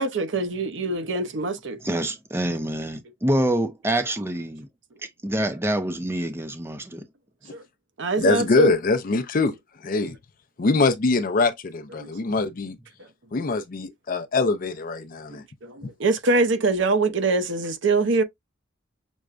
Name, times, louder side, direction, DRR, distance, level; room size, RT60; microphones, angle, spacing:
voice 1, 0.0-1.8 7.5-7.6 8.0-8.7 12.0-12.1 15.3-18.2, right 3 dB, 70° right, 0.7 m, -24 dB
voice 2, 1.8-4.7 5.2-7.0, right 1 dB, 15° right, 0.6 m, -26 dB
voice 3, 8.2-9.5 9.8-10.2 10.6-12.8 13.3-15.4 15.8-15.9, left 3 dB, 45° left, 0.5 m, -23 dB
6.1 x 2.2 x 2.4 m
head